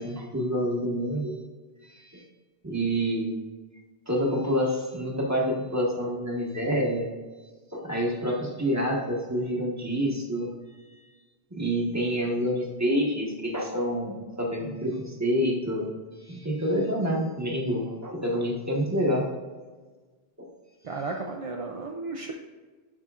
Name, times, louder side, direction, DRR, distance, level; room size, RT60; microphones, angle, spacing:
voice 1, 0.0-1.3 1.8-2.2 2.6-3.3 4.1-7.1 7.7-10.5 11.5-15.9 16.2-19.3 20.4-20.5, equal, 15° right, -2 dB, 1.2 m, -27 dB
voice 2, 20.8-22.3, right 3 dB, 45° right, 1 dB, 0.4 m, -34 dB
11.0 x 4.4 x 2.4 m, 1.3 s
omnidirectional pair, 1.0 m